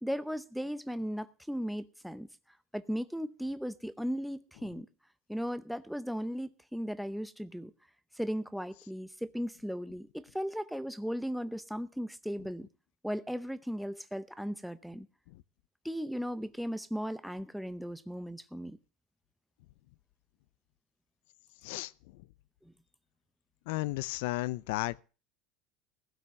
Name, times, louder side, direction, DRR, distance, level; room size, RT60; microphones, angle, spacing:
voice 1, 0.0-2.3 2.7-4.9 5.3-7.7 8.1-12.7 13.0-15.1 15.8-18.8 22.6-22.7, equal, ahead, 0.7 m, -36 dB
voice 2, 23.7-25.0, left 19 dB, 80° left, 0.6 m, -33 dB
16.0 x 5.9 x 7.6 m
supercardioid pair, 135°, 0 cm